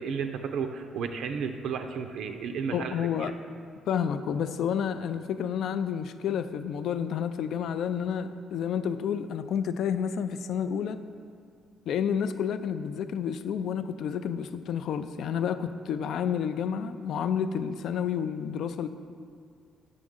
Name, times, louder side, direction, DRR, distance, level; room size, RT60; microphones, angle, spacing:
voice 1, 0.0-3.3, right 6 dB, 75° right, 6 dB, 0.4 m, -33 dB
voice 2, 2.7-3.3 3.9-11.0 11.9-18.9, left 8 dB, 70° left, 11 dB, 0.3 m, -30 dB
7.5 x 6.1 x 3.6 m, 2.2 s
cardioid pair, 130°, 0 cm